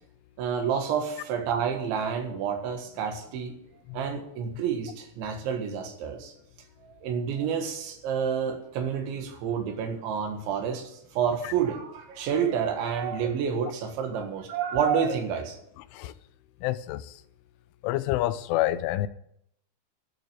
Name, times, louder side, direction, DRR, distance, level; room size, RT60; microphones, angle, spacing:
voice 1, 0.4-3.6 3.9-6.3 6.8-15.6, right 7 dB, 75° right, 3.9 m, -29 dB
voice 2, 16.6-17.2 17.8-19.1, left 15 dB, 90° left, 3.1 m, -28 dB
12.0 x 7.6 x 9.6 m
omnidirectional pair, 5.4 m